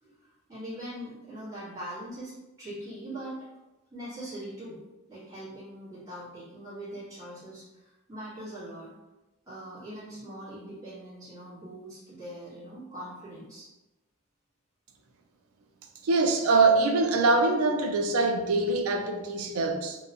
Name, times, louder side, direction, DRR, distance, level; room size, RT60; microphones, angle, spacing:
voice 1, 0.0-3.4 3.9-4.8 5.1-8.9 9.5-13.7, right 1 dB, 15° right, 1.3 m, -42 dB
voice 2, 16.0-20.0, right 3 dB, 80° right, 0.4 m, -24 dB
2.7 x 2.1 x 2.8 m
head